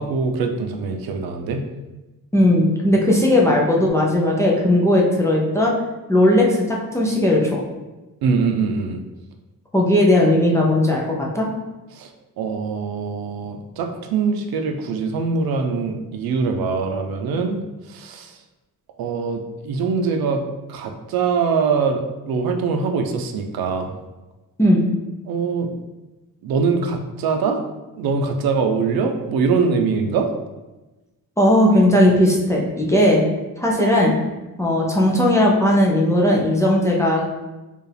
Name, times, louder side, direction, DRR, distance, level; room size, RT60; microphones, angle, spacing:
voice 1, 0.0-1.6 8.2-9.0 11.9-12.1 12.4-17.6 17.9-18.4 19.0-20.4 20.7-24.0 25.3-25.7 26.4-27.6 28.0-30.3, right 5 dB, 80° right, 5 dB, 0.6 m, -23 dB
voice 2, 2.3-5.7 6.1-7.6 9.7-11.5 24.6-24.9 31.4-33.2 33.6-34.1 34.6-37.3, left 1 dB, 10° left, -3 dB, 0.4 m, -17 dB
4.5 x 2.5 x 3.3 m, 1.1 s
cardioid pair, 165°, 35 cm